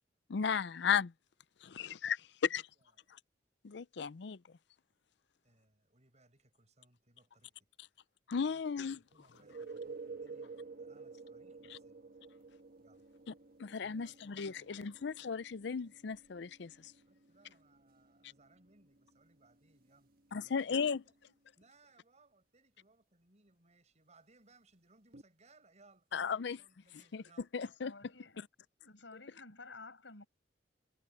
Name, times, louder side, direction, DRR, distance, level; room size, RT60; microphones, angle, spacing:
voice 1, 0.3-1.1 1.6-2.2 2.5-2.7 3.6-4.4 8.3-9.0 13.3-13.4 13.6-16.9 20.3-21.0 26.1-26.6 27.1-27.2 27.5-27.9 28.4-28.5, left 6 dB, 70° left, 0.5 m, -35 dB
voice 2, 2.5-3.2 5.4-7.7 8.4-12.1 12.8-13.1 13.8-15.0 17.1-20.9 21.6-27.5, right 2 dB, 40° right, 7.2 m, -67 dB
sound 1, 9.3-20.9 25.1-25.2, right 4 dB, 55° right, 1.4 m, -52 dB
voice 3, 27.8-28.4 28.8-30.3, left 3 dB, 90° left, 6.5 m, -52 dB
head